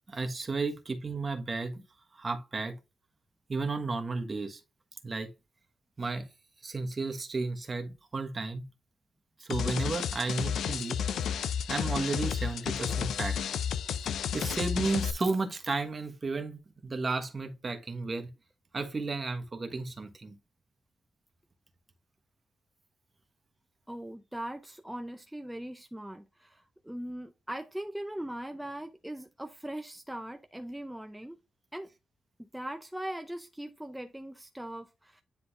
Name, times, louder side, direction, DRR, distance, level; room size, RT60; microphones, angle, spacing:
voice 1, 0.1-1.8 2.1-2.7 3.5-4.6 5.0-5.3 6.0-6.3 6.6-8.7 9.4-11.3 11.7-13.4 14.3-18.3 18.7-20.4, right 3 dB, 30° right, 1.3 m, -33 dB
sound 1, 9.5-15.1, left 8 dB, 85° left, 0.5 m, -32 dB
voice 2, 23.9-31.4 31.7-31.9 32.4-35.2, right 1 dB, 5° right, 0.5 m, -40 dB
9.9 x 3.9 x 2.5 m
wide cardioid pair, 135°, 0 cm